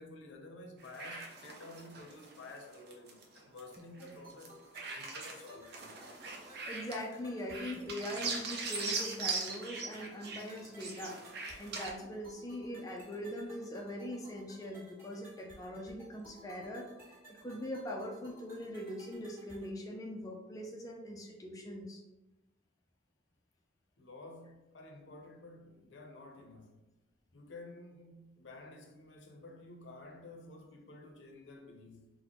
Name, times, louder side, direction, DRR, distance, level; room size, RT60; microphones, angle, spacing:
voice 1, 0.0-4.6 4.9-6.0 24.0-26.8 27.3-32.1, left 2 dB, 75° left, 0.6 m, -51 dB
sound 1, 0.8-4.5 4.7-7.1 7.5-11.9, right 4 dB, 60° right, 0.5 m, -40 dB
sound 2, 3.7-19.7, right 1 dB, 15° right, 1.5 m, -57 dB
voice 2, 6.7-11.1 11.6-17.1 17.4-22.0, equal, 20° left, 0.4 m, -42 dB
4.0 x 2.1 x 2.9 m
head